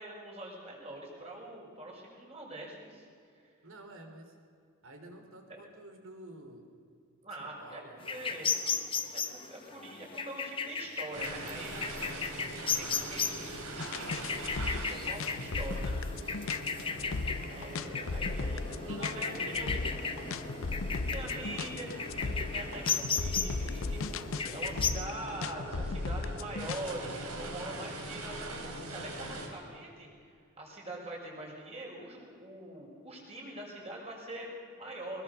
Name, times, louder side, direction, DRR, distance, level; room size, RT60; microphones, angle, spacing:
voice 1, 0.0-3.1 3.4-3.5 5.5-5.6 7.2-8.5 9.1-12.5 12.8-16.4 17.5-19.8 20.8-30.3 30.6-35.2, right 1 dB, 30° right, -2 dB, 6.2 m, -44 dB
voice 2, 3.6-4.4 4.8-6.7 7.4-8.4 17.1-19.8, right 2 dB, 65° right, 4 dB, 3.6 m, -50 dB
sound 1, 8.0-24.9, left 5 dB, 25° left, 1.1 m, -36 dB
sound 2, 11.1-29.5, right 1 dB, 85° right, 3.7 m, -43 dB
sound 3, 13.8-26.9, left 3 dB, 65° left, 0.7 m, -36 dB
22.5 x 21.0 x 7.1 m, 2.4 s
head